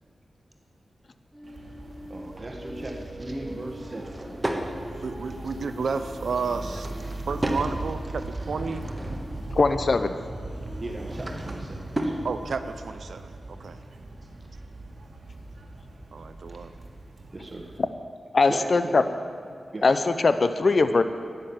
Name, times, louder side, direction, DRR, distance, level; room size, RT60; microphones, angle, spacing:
sound 1, 1.3-13.7, equal, ahead, 2.3 m, -45 dB
sound 2, 1.4-17.8, right 2 dB, 55° right, 1.8 m, -39 dB
voice 1, 2.1-4.2 7.1-7.2 10.8-12.3 16.5-16.6 17.3-17.8 18.5-19.1 19.7-19.9, right 2 dB, 35° right, 2 dB, 1.5 m, -38 dB
Drawer open or close / Wood, 3.7-4.7 6.4-7.7 8.2-9.4 10.7-12.2, right 1 dB, 20° right, 1.4 m, -33 dB
voice 2, 5.0-6.9 7.3-8.9 12.2-13.8 16.1-16.7, right 5 dB, 80° right, 9 dB, 0.5 m, -31 dB
voice 3, 9.6-10.1 18.3-19.0 19.8-21.0, left 3 dB, 55° left, 10 dB, 0.5 m, -21 dB
10.5 x 9.6 x 7.2 m, 2.3 s
cardioid pair, 65°, 0 cm